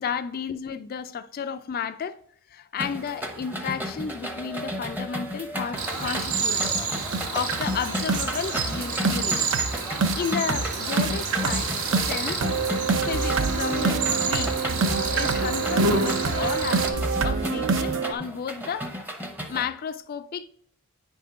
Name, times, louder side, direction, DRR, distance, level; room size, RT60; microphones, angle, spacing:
voice 1, 0.0-2.2 2.5-6.7 7.3-9.6 10.1-12.4 13.0-14.5 15.1-18.9 19.5-20.5, left 7 dB, 40° left, 0.3 m, -32 dB
sound 1, 2.8-19.7, equal, 10° right, 0.7 m, -34 dB
sound 2, 5.7-5.8 6.2-6.3 6.6-6.8 7.1-18.1, right 4 dB, 60° right, 0.6 m, -27 dB
Cricket, 5.8-16.9, right 4 dB, 75° right, 1.1 m, -29 dB
9.1 x 3.6 x 5.6 m
head